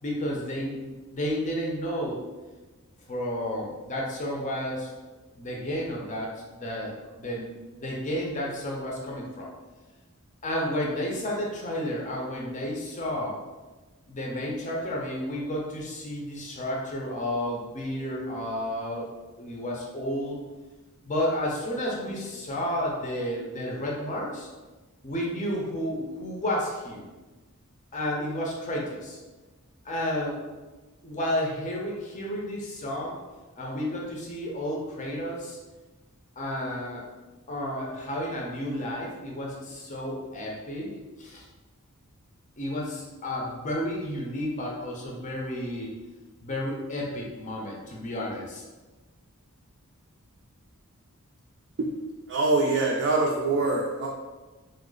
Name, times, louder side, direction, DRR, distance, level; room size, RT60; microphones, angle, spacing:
voice 1, 0.0-2.2 3.1-4.9 5.4-9.5 10.4-13.4 14.1-19.1 19.4-20.4 21.0-24.5 25.0-27.1 27.9-29.2 29.8-30.5 31.0-33.2 33.6-35.6 36.4-37.0 37.5-40.9 41.2-41.5 42.6-45.9 46.4-48.6, left 1 dB, 35° left, -2 dB, 0.6 m, -31 dB
voice 2, 52.3-54.1, right 3 dB, 55° right, -2 dB, 0.4 m, -24 dB
3.1 x 2.0 x 3.7 m, 1.2 s
head